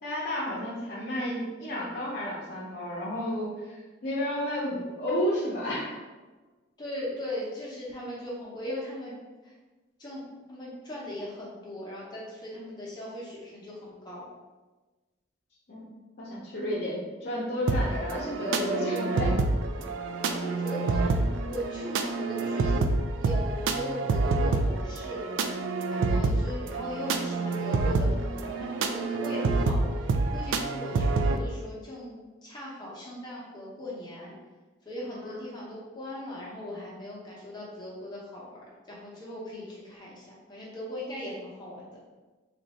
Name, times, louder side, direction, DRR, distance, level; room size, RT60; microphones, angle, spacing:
voice 1, 0.0-5.9 15.7-15.9 16.2-19.4 26.1-26.2 35.2-35.5, left 1 dB, 50° left, -7 dB, 0.7 m, -32 dB
voice 2, 6.8-9.1 9.4-9.5 10.0-14.3 18.9-19.1 19.8-19.9 20.3-22.8 23.2-25.3 25.9-34.3 34.8-38.6 38.9-42.0, left 1 dB, 20° left, -6 dB, 0.9 m, -39 dB
sound 1, 17.7-31.4, right 3 dB, 80° right, 0.3 m, -27 dB
3.2 x 2.6 x 4.1 m, 1.2 s
head